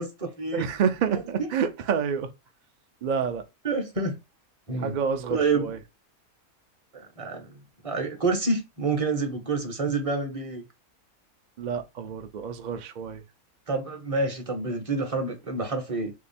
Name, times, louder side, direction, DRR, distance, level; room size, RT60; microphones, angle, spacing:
voice 1, 0.0-0.7 3.6-4.2 4.7-5.0 5.3-5.7 6.9-7.5 7.8-10.6 13.7-16.1, right 3 dB, 30° right, 0.6 m, -28 dB
voice 2, 0.5-2.3 3.0-3.4 4.8-5.8 11.6-13.2, right 7 dB, 85° right, 0.4 m, -28 dB
3.5 x 2.8 x 4.1 m
omnidirectional pair, 1.6 m